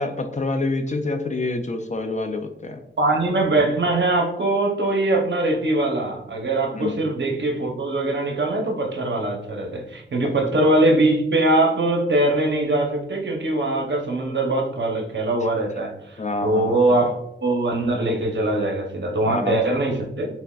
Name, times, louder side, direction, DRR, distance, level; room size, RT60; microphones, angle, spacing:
voice 1, 0.0-2.8 6.7-7.0 9.7-9.9 10.2-10.6 16.2-17.0 19.2-19.6, left 2 dB, 35° left, 6 dB, 0.4 m, -27 dB
voice 2, 3.0-20.3, right 2 dB, 60° right, 2 dB, 0.8 m, -22 dB
5.8 x 2.1 x 2.3 m, 0.83 s
wide cardioid pair, 90°, 21 cm